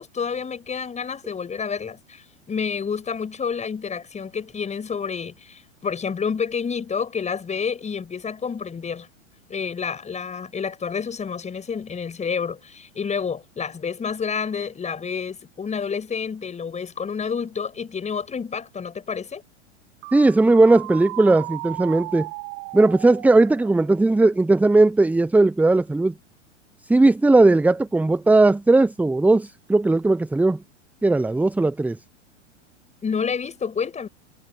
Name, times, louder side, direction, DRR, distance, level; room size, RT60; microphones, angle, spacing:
voice 1, 0.0-9.1 9.5-19.4 33.0-34.1, left 6 dB, 20° left, 6.4 m, -29 dB
sound 1, 20.0-23.9, right 24 dB, 45° right, 7.8 m, -36 dB
voice 2, 20.1-22.3 22.7-26.1 26.9-30.6 31.0-32.0, right 2 dB, 5° right, 0.7 m, -17 dB
hypercardioid pair, 100°, 37 cm